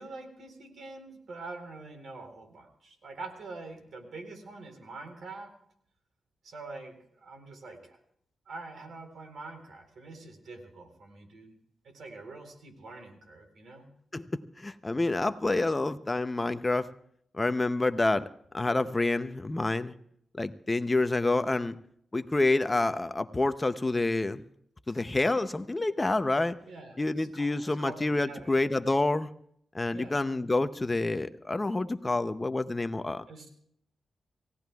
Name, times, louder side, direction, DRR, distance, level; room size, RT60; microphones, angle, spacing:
voice 1, 0.0-5.5 6.4-8.0 8.5-11.6 11.8-13.9 24.9-25.0 26.6-28.5 29.9-30.2 33.3-33.5, right 3 dB, 75° right, 5 dB, 3.9 m, -45 dB
voice 2, 14.1-16.9 17.3-18.3 18.5-19.9 20.4-21.8 22.1-24.4 24.9-26.6 27.0-29.3 29.7-33.2, left 2 dB, 20° left, 10 dB, 0.6 m, -28 dB
29.0 x 17.0 x 2.3 m, 0.67 s
wide cardioid pair, 110°, 0 cm